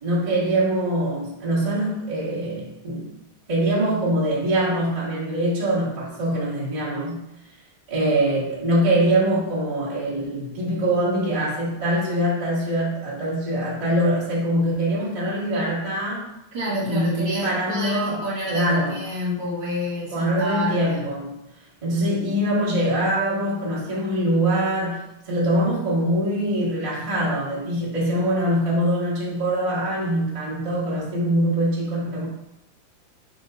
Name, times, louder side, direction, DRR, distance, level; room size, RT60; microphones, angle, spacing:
voice 1, 0.0-3.1 3.5-7.2 7.9-16.3 16.8-18.9 20.1-21.4 21.8-32.2, right 1 dB, 20° right, -9 dB, 0.8 m, -23 dB
voice 2, 16.5-21.0, equal, 55° right, -7 dB, 2.0 m, -29 dB
5.8 x 3.6 x 2.5 m, 0.83 s
omnidirectional pair, 3.5 m